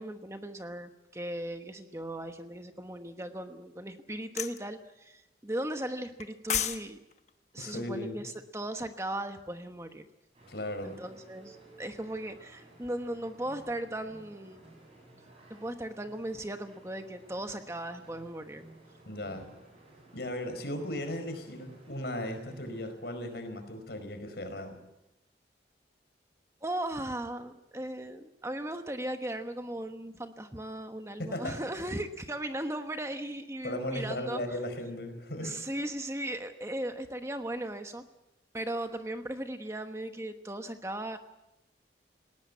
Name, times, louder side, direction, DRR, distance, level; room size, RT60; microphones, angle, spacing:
voice 1, 0.0-7.0 7.5-10.1 10.8-14.6 15.5-18.6 26.6-34.6 35.4-38.0 38.5-41.2, right 1 dB, 15° right, 7 dB, 1.1 m, -37 dB
sound 1, 4.4-4.6 6.2-6.8 7.1-7.3, left 9 dB, 40° left, 1.1 m, -30 dB
voice 2, 7.6-8.2 10.5-11.0 19.1-19.5 20.1-24.8 31.2-31.6 33.6-35.6, left 1 dB, 65° left, 7 dB, 4.9 m, -36 dB
sound 2, 10.3-22.9, right 1 dB, 35° right, 7.6 m, -56 dB
19.5 x 18.0 x 8.6 m, 0.91 s
head